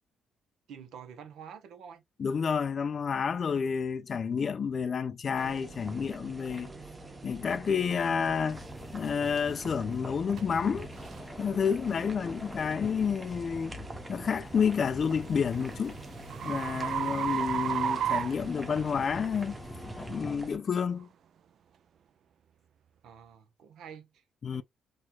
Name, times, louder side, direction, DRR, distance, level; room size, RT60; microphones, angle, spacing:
voice 1, 0.7-2.0 23.0-24.2 24.5-24.6, right 7 dB, 80° right, 0.8 m, -48 dB
voice 2, 2.2-6.7 7.2-8.6 8.9-10.9 11.4-13.7 14.1-16.0 16.4-19.6 20.1-21.1 24.4-24.6, left 6 dB, 45° left, 0.3 m, -30 dB
sound 1, 5.3-20.6, right 3 dB, 20° right, 0.7 m, -46 dB
sound 2, 8.5-20.4, left 1 dB, 15° left, 0.7 m, -45 dB
sound 3, 10.4-10.5 11.0-11.2 11.8-12.1 14.7-19.2, right 8 dB, 65° right, 0.3 m, -33 dB
4.3 x 2.4 x 2.3 m
cardioid pair, 90°, 0 cm